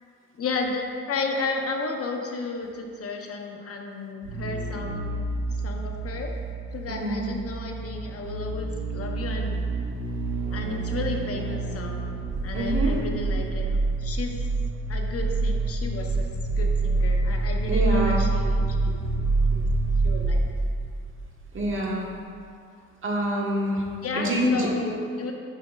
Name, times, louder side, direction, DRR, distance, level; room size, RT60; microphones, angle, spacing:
voice 1, 0.4-5.2 5.6-6.4 6.7-9.6 10.5-12.0 12.4-14.5 14.9-19.3 19.5-19.8 20.0-20.4 24.0-25.3, left 3 dB, 50° left, 2 dB, 0.8 m, -33 dB
sound 1, 4.2-21.8 22.0-22.1, right 3 dB, 85° right, 0.8 m, -27 dB
voice 2, 6.9-7.3 12.5-12.9 17.7-18.2 21.5-22.1 23.0-23.8 24.2-24.7, equal, 40° right, -2 dB, 1.3 m, -25 dB
8.8 x 6.1 x 2.4 m, 2.3 s
cardioid pair, 90°, 30 cm